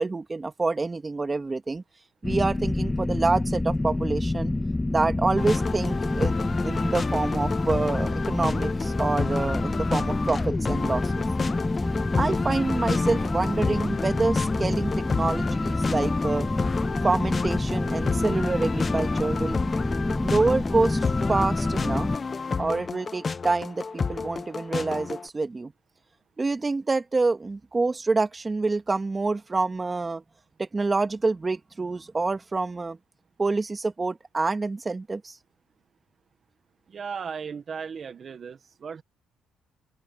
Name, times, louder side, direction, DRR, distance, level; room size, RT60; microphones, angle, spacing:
voice 1, 0.0-1.8 2.2-4.5 4.9-6.4 6.6-11.2 12.1-16.5 17.0-19.6 20.2-22.1 22.6-25.7 26.4-30.2 30.6-33.0 33.4-35.4, right 3 dB, 25° right, 2.3 m, -27 dB
sound 1, 2.2-22.2, left 2 dB, 15° left, 1.8 m, -27 dB
sound 2, 5.4-25.3, left 4 dB, 35° left, 1.2 m, -30 dB
voice 2, 36.9-39.0, right 6 dB, 45° right, 1.6 m, -36 dB
cardioid pair, 90°, 0 cm